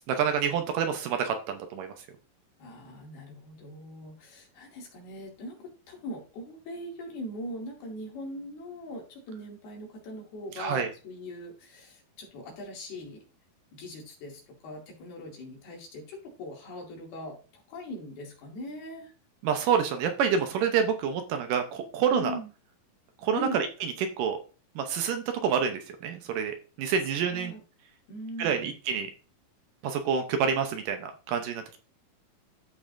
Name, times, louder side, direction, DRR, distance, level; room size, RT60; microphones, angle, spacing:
voice 1, 0.0-1.9 10.6-10.9 19.4-22.4 23.2-23.7 24.2-24.4 24.8-27.5 28.4-29.1 29.8-31.8, right 7 dB, 75° right, 6 dB, 2.2 m, -28 dB
voice 2, 2.6-13.2 13.7-19.1 22.1-22.5 23.3-23.6 27.1-27.6 28.1-28.7, left 1 dB, 90° left, -1 dB, 4.4 m, -41 dB
13.5 x 5.3 x 2.6 m, 0.35 s
omnidirectional pair, 4.4 m